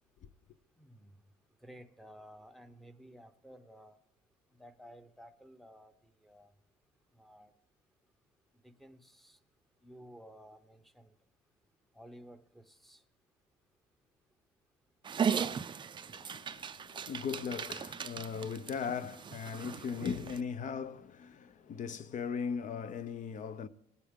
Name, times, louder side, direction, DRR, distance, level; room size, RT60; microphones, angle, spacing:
voice 1, 0.8-1.2 1.6-4.0 4.6-6.5 7.1-7.5 8.6-9.4 9.8-11.1 11.9-13.0, equal, ahead, 0.8 m, -54 dB
Dog, 15.0-20.4, right 7 dB, 30° right, 0.4 m, -37 dB
voice 2, 16.0-23.7, left 6 dB, 50° left, 0.6 m, -38 dB
18.5 x 8.3 x 3.7 m
cardioid pair, 110°, 17 cm